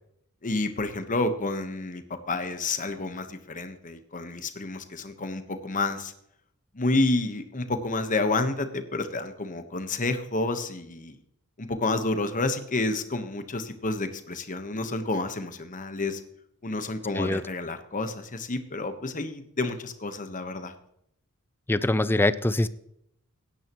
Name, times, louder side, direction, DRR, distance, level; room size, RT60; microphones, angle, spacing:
voice 1, 0.4-6.1 6.7-11.2 11.6-16.2 16.6-20.7, left 2 dB, 35° left, 8 dB, 1.2 m, -29 dB
voice 2, 21.7-22.7, left 2 dB, 10° left, 15 dB, 0.4 m, -23 dB
17.0 x 10.0 x 3.0 m, 0.75 s
head